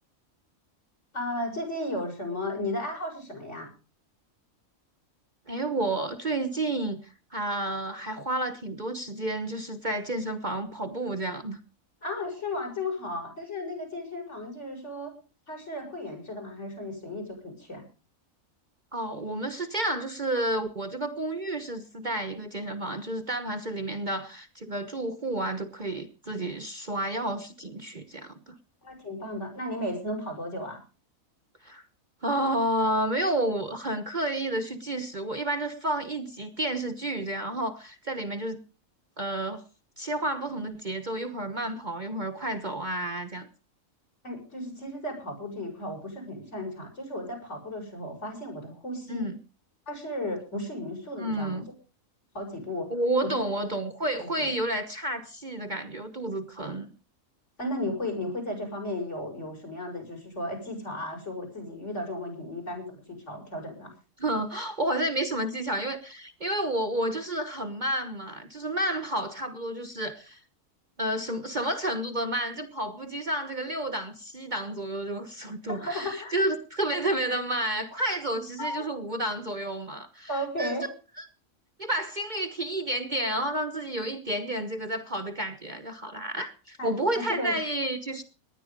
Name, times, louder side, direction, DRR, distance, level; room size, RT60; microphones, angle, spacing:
voice 1, 1.1-3.7 12.0-15.1 15.5-17.8 28.8-30.8 44.2-49.3 49.9-51.6 52.3-52.9 53.2-53.4 54.2-54.5 57.6-63.9 75.7-76.4 78.6-78.9 80.3-80.9 86.8-87.5, left 1 dB, 55° left, 7.0 m, -34 dB
voice 2, 5.5-7.0 7.3-11.6 18.9-28.6 31.6-31.8 32.2-38.6 39.2-39.6 40.0-43.5 49.1-49.4 51.2-51.7 52.9-56.9 64.2-70.4 71.0-80.3 80.6-80.7 81.2-81.3 81.8-88.2, right 1 dB, 35° right, 1.2 m, -30 dB
19.0 x 11.0 x 5.2 m
omnidirectional pair, 1.5 m